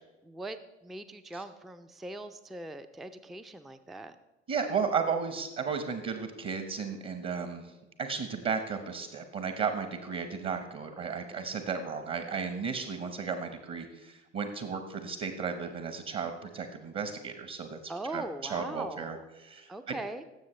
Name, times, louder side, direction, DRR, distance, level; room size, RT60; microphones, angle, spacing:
voice 1, 0.2-4.2 17.9-19.2 19.7-20.2, right 2 dB, ahead, 10 dB, 0.4 m, -41 dB
voice 2, 4.5-7.7 8.0-20.0, right 5 dB, 35° right, 8 dB, 1.1 m, -34 dB
16.5 x 7.4 x 3.2 m, 1.1 s
figure-of-eight pair, 65°, 34 cm